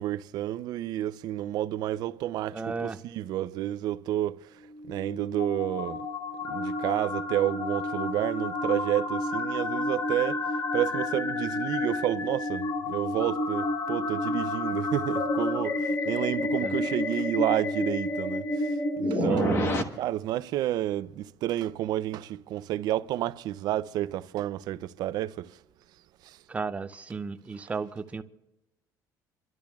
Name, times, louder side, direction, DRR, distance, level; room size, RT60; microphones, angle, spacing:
voice 1, 0.0-4.6 4.9-6.1 6.4-25.6 26.2-26.4, right 13 dB, 60° right, 0.5 m, -30 dB
voice 2, 2.5-3.0 16.6-16.7 19.1-19.7 26.5-28.2, right 4 dB, 15° right, 0.5 m, -34 dB
sound 1, 4.7-19.8, left 2 dB, 35° left, 1.2 m, -30 dB
28.0 x 12.5 x 2.4 m
cardioid pair, 150°, 8 cm